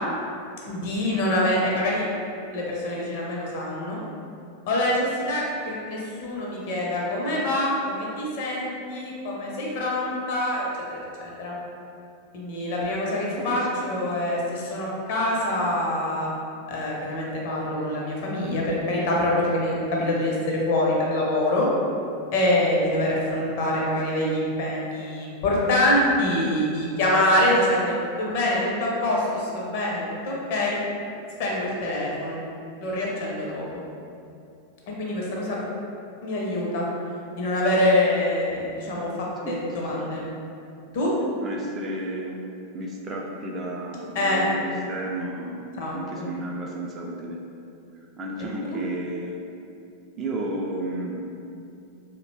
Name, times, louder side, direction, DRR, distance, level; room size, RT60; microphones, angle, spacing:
voice 1, 0.7-2.1 2.5-4.0 4.7-11.6 12.3-16.3 16.7-21.7 22.3-30.8 31.4-32.4 32.8-33.8 35.0-35.6 36.2-36.9 37.4-40.3 40.9-41.1 44.1-44.4 45.8-46.3, left 1 dB, 50° left, -3 dB, 0.5 m, -25 dB
voice 2, 13.4-13.9 39.4-40.0 41.4-42.4 42.7-47.4 48.2-49.4 50.2-51.2, right 1 dB, 25° right, -2 dB, 0.3 m, -33 dB
2.6 x 2.1 x 2.7 m, 2.6 s
figure-of-eight pair, 90°, 0 cm